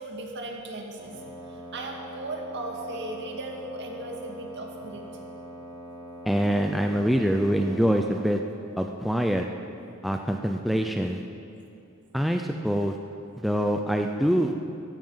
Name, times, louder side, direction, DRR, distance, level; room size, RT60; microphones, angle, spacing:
voice 1, 0.0-5.1, right 2 dB, 55° right, 1 dB, 2.1 m, -37 dB
Wind instrument woodwind instrument, 1.0-8.4, right 1 dB, 25° right, 3.9 m, -42 dB
voice 2, 6.2-8.4 8.8-9.5 10.0-11.2 12.1-13.0 13.4-14.5, equal, ahead, 3 dB, 0.5 m, -24 dB
15.5 x 15.5 x 5.7 m, 2.7 s
head